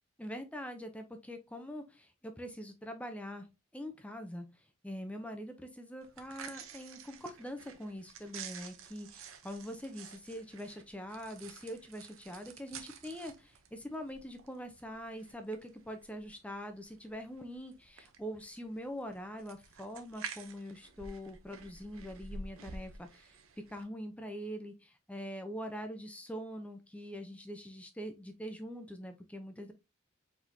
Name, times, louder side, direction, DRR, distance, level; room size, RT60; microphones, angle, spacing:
voice 1, 0.2-3.5 3.7-23.4 23.7-29.7, equal, 5° left, 7 dB, 0.5 m, -43 dB
sound 1, 6.0-23.8, right 5 dB, 80° right, 0.7 m, -50 dB
4.5 x 4.1 x 2.6 m, 0.25 s
head